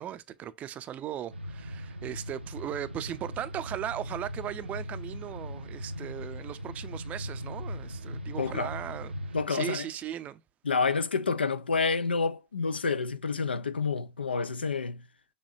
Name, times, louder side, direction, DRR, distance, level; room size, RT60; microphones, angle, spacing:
voice 1, 0.0-10.4, right 11 dB, 25° right, 0.5 m, -38 dB
sound 1, 1.3-9.4, equal, 80° right, 0.6 m, -39 dB
voice 2, 8.4-8.7 9.3-9.9 10.6-15.0, left 4 dB, 75° left, 0.5 m, -29 dB
6.6 x 2.8 x 2.6 m
figure-of-eight pair, 95°, 6 cm